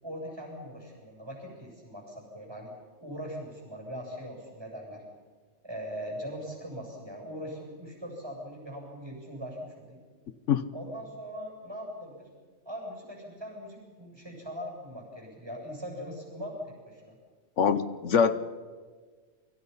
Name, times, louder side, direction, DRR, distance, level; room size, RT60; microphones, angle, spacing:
voice 1, 0.0-2.7 3.0-5.0 5.6-10.0 10.7-12.3 12.6-17.2, equal, 20° right, 0 dB, 7.9 m, -40 dB
voice 2, 17.6-18.4, left 7 dB, 75° left, 13 dB, 1.3 m, -23 dB
29.0 x 25.0 x 5.7 m, 1.5 s
omnidirectional pair, 1.3 m